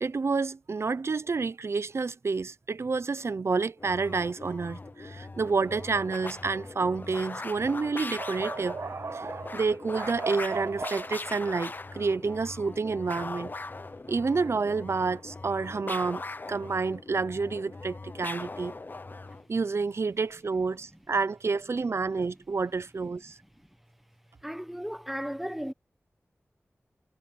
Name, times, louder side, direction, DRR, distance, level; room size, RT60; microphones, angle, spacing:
voice 1, 0.0-13.5 14.1-16.2 16.5-18.7 19.5-23.4, right 4 dB, 65° right, 0.6 m, -29 dB
sound 1, 3.8-19.5, left 3 dB, 40° left, 0.6 m, -40 dB
voice 2, 24.4-25.7, equal, 5° right, 1.1 m, -35 dB
wide cardioid pair, 85°, 5 cm